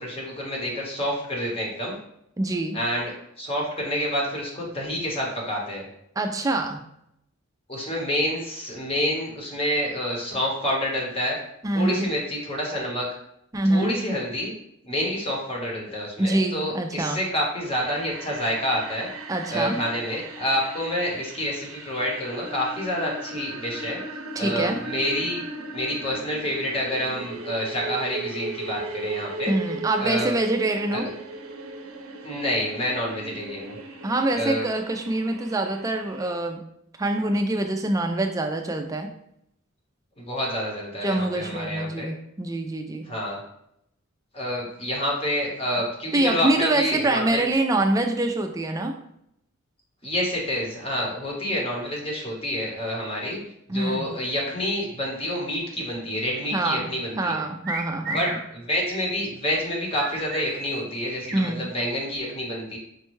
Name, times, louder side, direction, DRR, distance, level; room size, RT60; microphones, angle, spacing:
voice 1, 0.0-2.0 2.7-3.1 3.4-5.9 7.7-11.4 11.7-13.1 13.7-14.5 14.8-19.1 19.5-24.0 24.4-25.4 25.7-29.5 30.0-30.3 30.9-31.1 32.2-33.8 34.3-34.7 40.2-42.1 43.1-43.4 44.3-47.4 50.0-53.4 53.7-57.4 58.1-62.8, equal, 30° left, -2 dB, 1.0 m, -28 dB
voice 2, 2.4-2.8 6.2-6.8 11.6-12.1 13.5-14.0 16.2-17.2 19.3-19.8 24.4-24.8 29.5-31.1 34.0-36.6 37.0-39.1 41.0-43.1 46.1-48.9 53.7-54.1 56.5-56.9 57.2-58.3 61.3-61.7, right 2 dB, 15° right, 4 dB, 0.3 m, -25 dB
sound 1, 17.8-36.4, right 2 dB, 90° right, 0.6 m, -37 dB
sound 2, 57.6-58.4 60.0-61.4, right 2 dB, 45° right, 0.7 m, -33 dB
5.1 x 2.2 x 3.1 m, 0.75 s
head